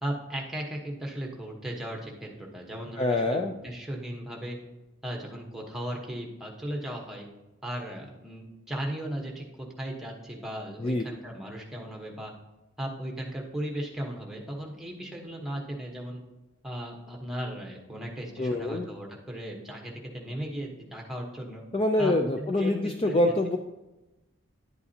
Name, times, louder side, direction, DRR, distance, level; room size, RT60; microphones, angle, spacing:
voice 1, 0.0-4.6 5.0-7.3 7.6-12.3 12.8-16.2 16.6-21.6 22.0-22.1 22.4-23.3, right 1 dB, ahead, 0 dB, 1.1 m, -36 dB
voice 2, 3.0-3.5 10.8-11.1 18.4-18.9 21.7-23.6, left 1 dB, 30° left, 4 dB, 0.4 m, -25 dB
10.5 x 8.2 x 2.8 m, 1.0 s
head